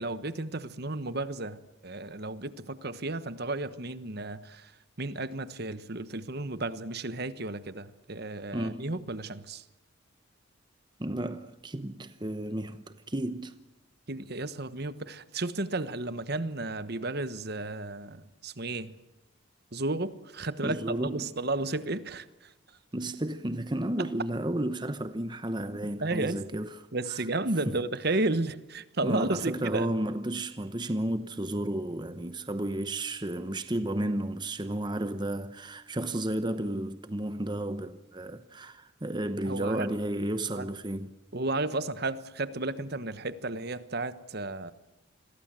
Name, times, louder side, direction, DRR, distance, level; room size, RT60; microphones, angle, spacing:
voice 1, 0.0-4.7 5.0-9.6 14.1-19.0 19.7-22.2 26.0-26.4 26.9-29.9 39.5-39.9 40.5-40.7 41.3-44.7, right 2 dB, 50° right, 1.2 m, -33 dB
voice 2, 8.5-9.0 11.0-13.5 20.6-21.2 22.9-27.3 27.7-27.8 29.0-41.1, right 1 dB, 20° right, 0.9 m, -32 dB
28.0 x 22.0 x 7.6 m
head